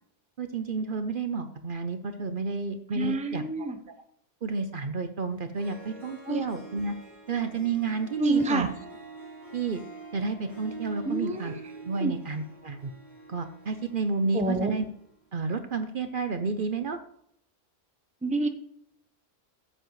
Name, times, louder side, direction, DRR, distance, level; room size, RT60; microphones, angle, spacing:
voice 1, 0.4-3.4 4.4-6.9 7.3-8.7 9.5-9.8 10.1-11.5 11.8-12.9 13.3-14.8 15.3-17.0, right 4 dB, 50° right, 8 dB, 0.8 m, -30 dB
voice 2, 2.9-3.8 6.3-6.4 8.2-8.7 11.0-11.6 12.0-12.1 14.3-14.7 18.2-18.5, right 2 dB, 5° right, 7 dB, 0.7 m, -27 dB
Harp, 5.3-5.4 5.5-15.1, right 3 dB, 30° right, 5.0 m, -46 dB
15.0 x 7.8 x 3.1 m, 0.72 s
omnidirectional pair, 1.2 m